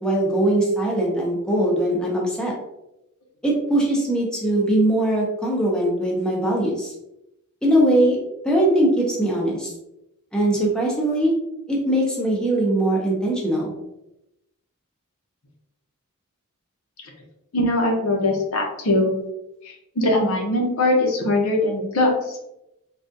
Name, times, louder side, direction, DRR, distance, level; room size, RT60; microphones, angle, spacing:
voice 1, 0.0-2.5 3.4-6.9 7.6-8.2 8.4-9.7 10.3-11.3 11.7-13.7, right 1 dB, 5° left, -3 dB, 0.6 m, -21 dB
voice 2, 17.5-19.1 19.6-22.4, left 1 dB, 70° left, 0 dB, 0.7 m, -21 dB
3.4 x 2.3 x 2.6 m, 0.87 s
head